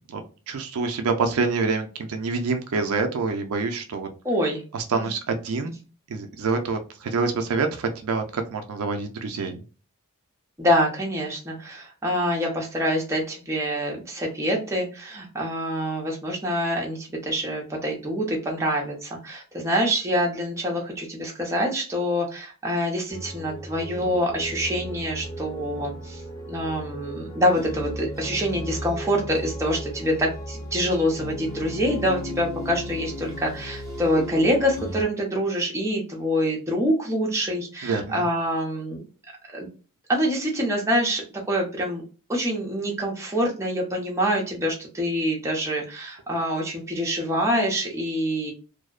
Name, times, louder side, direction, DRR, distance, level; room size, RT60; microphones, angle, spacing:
voice 1, 0.1-4.1 4.7-5.7 6.1-9.6 37.8-38.3, right 4 dB, 70° right, 5 dB, 0.4 m, -26 dB
voice 2, 4.2-4.6 4.9-5.1 10.6-26.2 26.5-39.0 39.5-39.7 40.1-42.0 42.3-48.5, equal, 15° right, -2 dB, 0.6 m, -26 dB
sound 1, 23.1-35.0, equal, 15° left, 1.0 m, -36 dB
2.6 x 2.0 x 2.3 m, 0.35 s
head